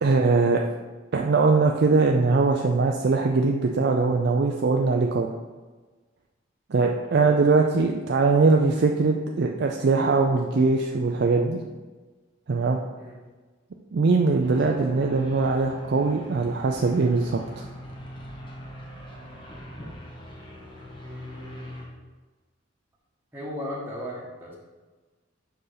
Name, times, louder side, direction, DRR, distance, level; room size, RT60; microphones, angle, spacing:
voice 1, 0.0-0.6 1.1-5.4 6.7-11.6 12.5-12.8 13.9-17.6, right 3 dB, 55° right, 2 dB, 0.4 m, -21 dB
sound 1, 14.4-21.9, equal, 25° left, 1.1 m, -42 dB
voice 2, 21.0-21.7 23.3-24.6, left 1 dB, 10° right, -6 dB, 1.2 m, -37 dB
5.7 x 4.5 x 4.9 m, 1.3 s
head